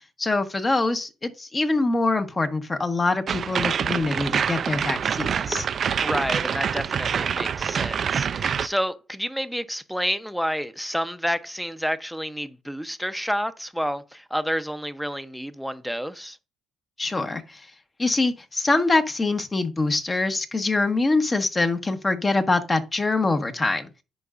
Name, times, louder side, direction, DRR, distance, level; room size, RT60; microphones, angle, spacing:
voice 1, 0.2-5.7 17.0-17.7 18.0-23.9, left 3 dB, 30° left, 1.1 m, -24 dB
sound 1, 3.3-8.7, right 7 dB, 55° right, 0.4 m, -26 dB
voice 2, 6.0-16.4, equal, ahead, 0.7 m, -29 dB
10.5 x 4.7 x 2.5 m
supercardioid pair, 65°, 0 cm